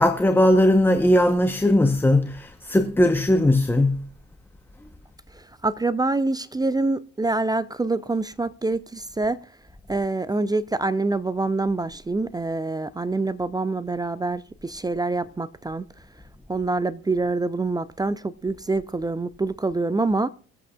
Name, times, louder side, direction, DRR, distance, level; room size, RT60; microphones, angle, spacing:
voice 1, 0.0-4.1, left 1 dB, 5° left, 0.9 m, -19 dB
voice 2, 5.3-9.4 9.9-15.9 16.5-20.3, right 3 dB, 10° right, 0.5 m, -26 dB
23.5 x 8.2 x 2.3 m
hypercardioid pair, 50°, 32 cm